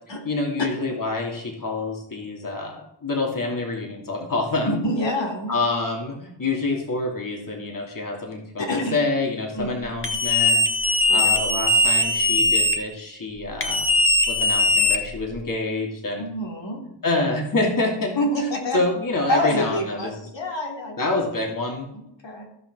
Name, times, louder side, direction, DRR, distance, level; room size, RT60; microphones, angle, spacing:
voice 1, 0.2-4.8 5.5-8.6 8.9-10.6 11.1-13.9 14.3-16.3 17.0-18.1 18.4-18.5 18.7-20.3 21.0-21.9, left 2 dB, 45° left, 0 dB, 2.6 m, -27 dB
voice 2, 4.7-5.5 8.7-8.9 9.5-9.7 11.0-11.2 16.2-16.8 18.2-18.8 19.3-21.0 21.9-22.5, equal, 75° left, 0 dB, 3.3 m, -27 dB
sound 1, 10.0-12.8 13.6-15.4, left 2 dB, 30° left, 1.4 m, -20 dB
15.0 x 6.0 x 6.1 m, 0.75 s
wide cardioid pair, 100°, 44 cm